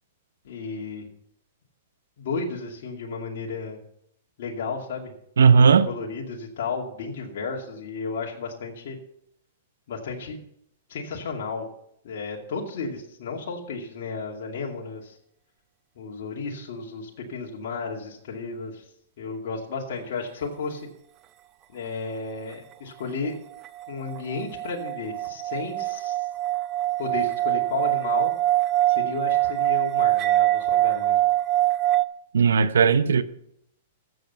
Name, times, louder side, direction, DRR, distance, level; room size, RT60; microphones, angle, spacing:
voice 1, 0.4-1.1 2.2-3.8 4.4-5.1 5.5-9.0 9.9-10.4 10.9-11.7 12.0-15.2 16.0-18.8 19.2-20.9 21.7-23.4 23.9-26.3 27.0-28.3 28.9-31.2, left 4 dB, 65° left, -1 dB, 2.5 m, -33 dB
voice 2, 5.4-5.9 32.3-33.2, right 6 dB, 90° right, 13 dB, 0.8 m, -16 dB
sound 1, 23.6-32.0, right 15 dB, 30° right, 0.6 m, -24 dB
14.0 x 7.9 x 5.5 m, 0.72 s
hypercardioid pair, 130°, 0 cm